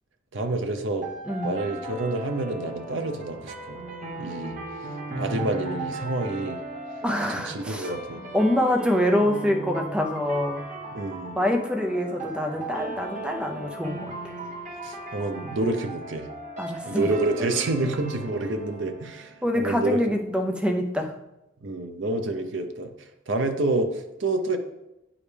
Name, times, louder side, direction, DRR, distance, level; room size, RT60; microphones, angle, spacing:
voice 1, 0.3-1.1 1.4-3.8 4.2-4.6 5.2-6.6 7.3-8.2 10.9-11.4 14.8-16.3 16.9-20.0 21.6-24.6, right 2 dB, 70° right, 6 dB, 0.7 m, -28 dB
sound 1, 1.0-20.0, right 2 dB, 40° right, 1.2 m, -37 dB
voice 2, 7.0-7.9 8.3-10.6 11.4-14.1 16.6-17.0 19.4-21.1, left 1 dB, 5° right, 3 dB, 0.5 m, -25 dB
8.5 x 5.0 x 3.3 m, 0.92 s
head